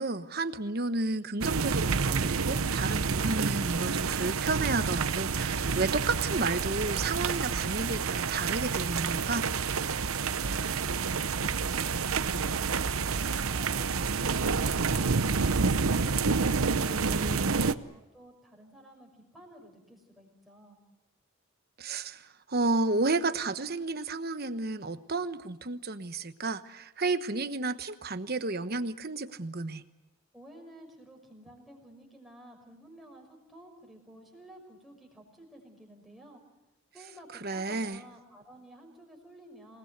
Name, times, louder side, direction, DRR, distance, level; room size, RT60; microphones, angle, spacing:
voice 1, 0.0-9.4 16.8-17.7 21.8-29.8 37.3-38.0, right 3 dB, 50° right, 10 dB, 1.1 m, -32 dB
sound 1, 1.4-17.7, right 5 dB, 90° right, 0.9 m, -29 dB
voice 2, 16.7-20.8 30.3-36.4 36.9-39.8, right 1 dB, ahead, 1 dB, 5.9 m, -53 dB
27.5 x 20.0 x 8.0 m, 0.99 s
head